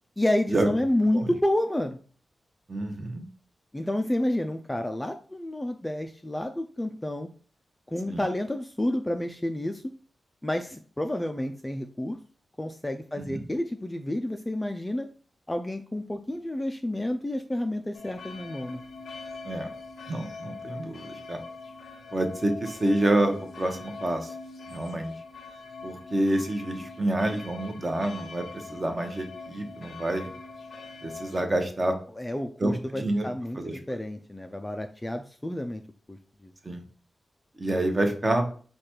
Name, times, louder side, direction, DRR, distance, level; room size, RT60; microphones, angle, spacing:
voice 1, 0.2-2.0 3.7-7.3 7.9-9.8 10.4-12.2 12.6-15.1 15.5-18.8 32.2-35.8 36.1-36.5, left 1 dB, 10° left, 6 dB, 0.3 m, -30 dB
voice 2, 2.7-3.2 8.1-8.2 13.3-13.4 19.4-19.7 20.1-21.4 22.1-24.3 24.7-25.1 25.8-30.3 31.0-31.9 32.6-33.3 33.6-33.8 36.6-36.8 37.6-38.5, right 1 dB, 30° right, 5 dB, 0.8 m, -28 dB
sound 1, 17.9-31.5, left 4 dB, 70° left, 0.5 m, -42 dB
4.8 x 2.3 x 4.3 m, 0.42 s
wide cardioid pair, 115°, 0 cm